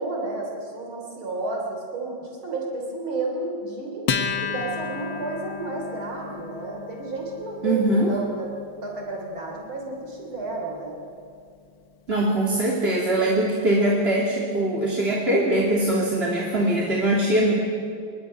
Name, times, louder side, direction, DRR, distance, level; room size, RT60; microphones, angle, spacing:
voice 1, 0.0-4.1 4.4-8.5 8.8-11.0, right 2 dB, 70° right, 0 dB, 4.2 m, -31 dB
Acoustic guitar, 4.1-10.9, left 6 dB, 60° left, 2.1 m, -33 dB
voice 2, 7.6-8.1 12.1-17.5, right 1 dB, 30° right, -2 dB, 2.8 m, -22 dB
24.0 x 21.0 x 9.9 m, 2.4 s
omnidirectional pair, 2.3 m